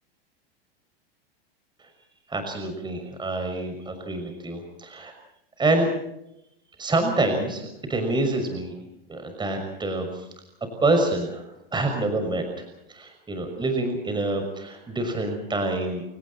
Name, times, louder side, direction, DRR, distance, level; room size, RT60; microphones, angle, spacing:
voice 1, 2.3-5.1 5.6-5.9 6.8-8.7 9.1-10.3 10.8-11.4 11.7-12.5 12.9-16.0, right 2 dB, 15° right, 5 dB, 6.2 m, -26 dB
29.0 x 29.0 x 4.3 m, 0.82 s
hypercardioid pair, 115°, 30 cm